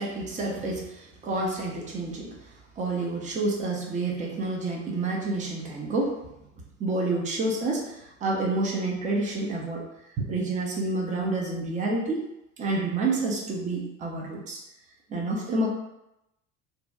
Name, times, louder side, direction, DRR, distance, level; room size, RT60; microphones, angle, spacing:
voice 1, 0.0-2.3 2.8-6.2 6.8-9.9 10.2-12.3 12.6-14.6 15.1-15.7, right 2 dB, 20° right, -2 dB, 0.4 m, -29 dB
2.6 x 2.1 x 2.2 m, 0.88 s
figure-of-eight pair, 65°, 44 cm